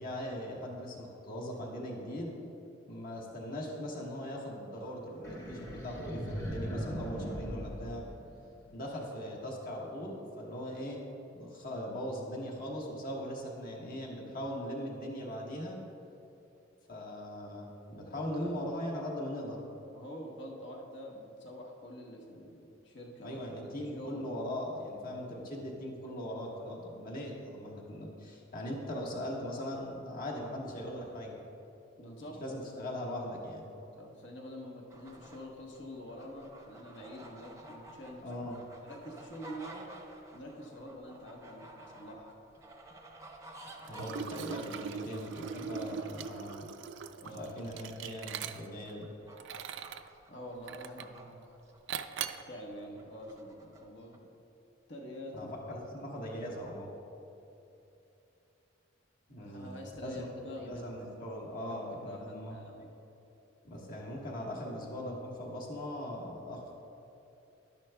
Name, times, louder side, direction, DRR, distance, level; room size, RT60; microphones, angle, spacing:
voice 1, 0.0-2.4 2.9-8.0 8.7-11.0 11.3-15.8 16.9-19.6 23.2-31.3 32.4-33.7 38.2-38.6 43.9-46.7 47.2-49.1 55.3-56.9 59.3-62.8 63.6-66.7, equal, 50° left, -2 dB, 1.4 m, -40 dB
sound 1, 5.2-8.7, equal, 20° left, 0.9 m, -39 dB
voice 2, 18.1-18.6 19.9-24.3 32.0-32.5 33.8-38.2 38.8-39.9 40.3-42.4 47.2-47.6 50.3-51.5 52.5-54.2 54.9-55.8 59.4-60.9 61.7-62.9, equal, 65° left, -1 dB, 1.1 m, -46 dB
sound 2, 34.9-52.3 52.7-53.9 54.1-54.2, right 1 dB, 15° right, 0.6 m, -52 dB
Liquid, 43.9-48.9 49.4-50.1 50.7-51.2 51.9-52.5, right 7 dB, 70° right, 0.3 m, -41 dB
12.0 x 10.5 x 2.2 m, 2.8 s
head